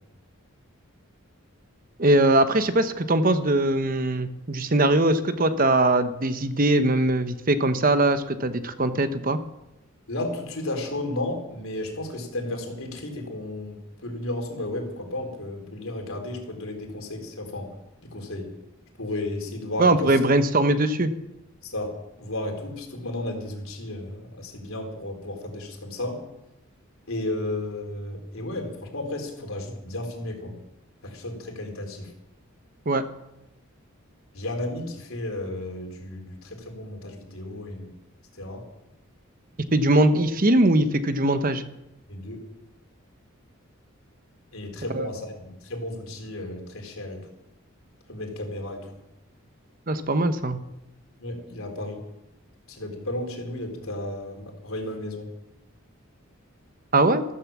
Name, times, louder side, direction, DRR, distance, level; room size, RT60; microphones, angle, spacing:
voice 1, 2.0-9.4 19.8-21.1 32.9-33.0 39.7-41.6 44.9-45.1 49.9-50.6 56.9-57.2, right 2 dB, 40° right, 10 dB, 1.0 m, -21 dB
voice 2, 10.1-17.7 18.1-18.5 19.0-20.1 21.6-26.2 27.1-30.6 31.0-32.1 34.3-37.9 38.4-38.7 42.1-42.4 44.5-47.2 48.1-48.9 51.2-52.0 52.7-55.3, left 1 dB, 75° left, 3 dB, 3.9 m, -33 dB
14.0 x 13.0 x 7.3 m, 0.90 s
head